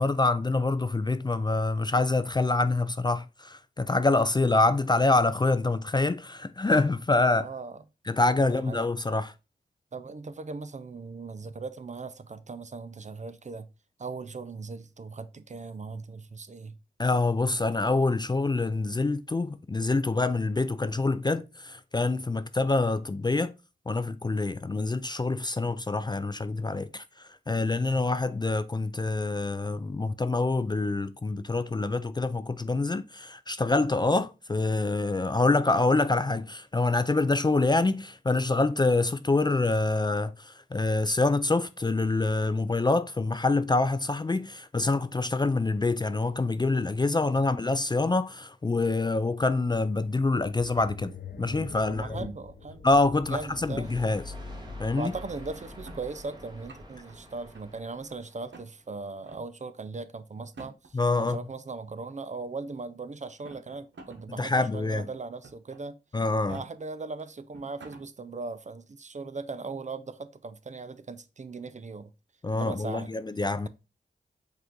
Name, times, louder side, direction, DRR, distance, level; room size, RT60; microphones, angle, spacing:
voice 1, 0.0-7.5 8.1-9.3 17.0-23.5 23.9-52.2 52.8-54.2 54.8-55.1 60.9-61.4 64.4-65.1 66.1-66.6 72.4-73.7, left 3 dB, 25° left, 0.3 m, -26 dB
voice 2, 7.3-7.8 8.4-8.8 9.9-13.7 14.0-16.8 47.3-47.4 51.9-52.9 53.3-53.9 55.0-66.0 66.5-72.1 72.6-73.1, right 4 dB, 40° right, 0.5 m, -39 dB
sound 1, 50.3-58.1, left 4 dB, 60° left, 0.7 m, -44 dB
sound 2, 53.3-58.9, right 1 dB, 25° right, 1.3 m, -50 dB
sound 3, 55.1-56.0 56.5-57.1 57.5-58.1 58.5-58.7 59.2-59.4 60.4-61.0 62.1-62.2 63.2-64.2 64.6-64.7 65.4-65.8 66.3-66.6 67.2-67.3 67.5-68.0, right 3 dB, 80° right, 0.9 m, -49 dB
5.1 x 2.6 x 3.6 m
cardioid pair, 40°, 19 cm